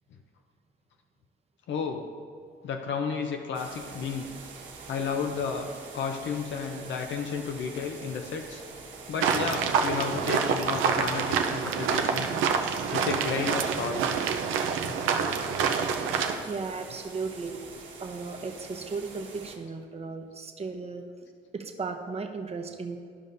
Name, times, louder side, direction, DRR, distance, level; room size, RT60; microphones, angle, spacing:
voice 1, 1.7-2.0 2.6-4.3 4.9-5.7 5.9-8.6 9.1-12.4 12.9-14.0, left 6 dB, 70° left, 4 dB, 0.6 m, -32 dB
sound 1, 3.5-19.6, right 4 dB, 75° right, 1.5 m, -45 dB
sound 2, 9.2-16.4, right 6 dB, 90° right, 0.6 m, -27 dB
voice 2, 14.6-14.9 16.4-17.6 18.0-23.0, right 4 dB, 30° right, 4 dB, 0.8 m, -36 dB
12.5 x 5.4 x 2.6 m, 2.2 s
cardioid pair, 90°, 20 cm